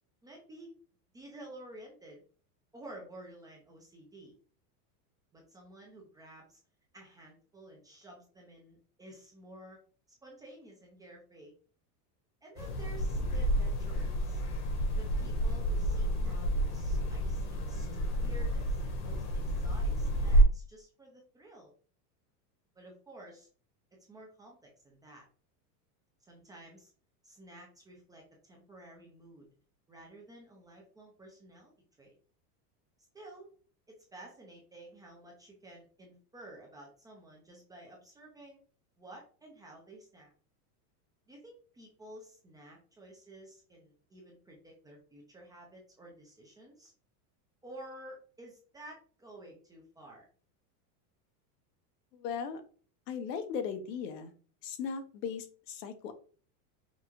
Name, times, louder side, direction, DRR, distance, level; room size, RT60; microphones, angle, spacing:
voice 1, 0.2-0.8 1.1-2.2 2.7-4.3 5.3-6.6 6.9-9.8 10.2-11.5 12.4-14.4 14.9-21.7 22.8-23.5 24.1-25.3 26.3-26.9 27.2-29.5 29.9-31.7 32.0-32.1 33.1-33.5 33.9-38.6 39.0-40.3 41.3-46.9 47.6-50.3, right 1 dB, 10° right, -1 dB, 0.4 m, -52 dB
sound 1, 12.6-20.4, right 1 dB, 35° left, 1.0 m, -29 dB
voice 2, 52.1-52.6 53.1-54.3 54.6-56.1, left 6 dB, 90° left, 8 dB, 1.0 m, -37 dB
5.6 x 2.4 x 3.0 m, 0.41 s
supercardioid pair, 155°, 47 cm